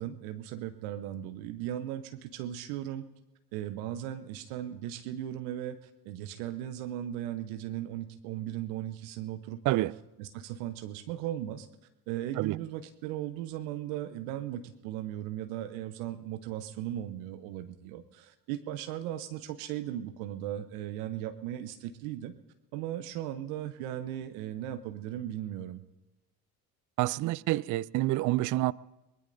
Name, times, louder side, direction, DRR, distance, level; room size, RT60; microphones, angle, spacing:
voice 1, 0.0-3.0 3.5-9.8 10.2-11.7 12.1-22.3 22.7-25.8, right 12 dB, 70° right, 1.0 m, -37 dB
voice 2, 27.0-28.7, right 17 dB, 45° right, 0.4 m, -27 dB
23.0 x 20.0 x 2.7 m
hypercardioid pair, 55°, 46 cm